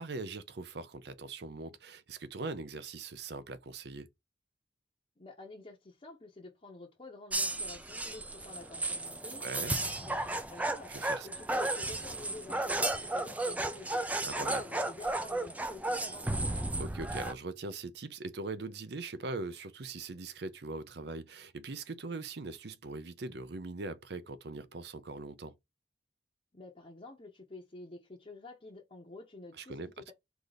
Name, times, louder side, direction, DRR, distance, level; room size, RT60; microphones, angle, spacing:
voice 1, 0.0-4.1 9.4-9.7 10.9-11.3 14.2-14.6 16.8-25.5 29.6-29.9, right 3 dB, 65° right, 0.6 m, -41 dB
voice 2, 5.2-10.9 11.2-14.1 14.4-16.8 26.5-30.1, left 2 dB, 35° left, 0.8 m, -49 dB
sound 1, 7.3-17.3, right 2 dB, 10° right, 0.4 m, -34 dB
4.9 x 2.5 x 4.0 m
head